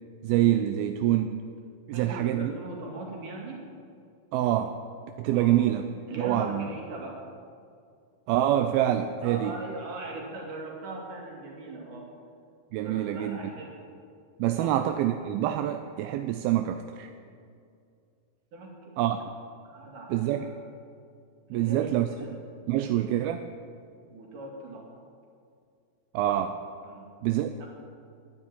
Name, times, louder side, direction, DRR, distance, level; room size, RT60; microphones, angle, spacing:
voice 1, 0.2-1.4 1.9-2.5 4.3-4.8 5.2-5.9 6.2-6.7 8.3-9.5 12.7-13.4 14.4-17.1 19.0-19.2 20.1-20.5 21.5-22.1 22.7-23.4 26.1-26.6 27.2-27.5, right 12 dB, 80° right, 7 dB, 2.3 m, -26 dB
voice 2, 1.9-3.6 5.3-5.6 6.1-7.3 9.2-12.1 12.7-13.8 14.6-14.8 18.5-19.2 19.6-20.6 21.5-22.3 22.7-23.1 24.1-24.9 26.9-27.1 27.6-27.7, right 2 dB, 55° right, 0 dB, 3.7 m, -40 dB
11.0 x 10.0 x 9.0 m, 2.4 s
omnidirectional pair, 4.6 m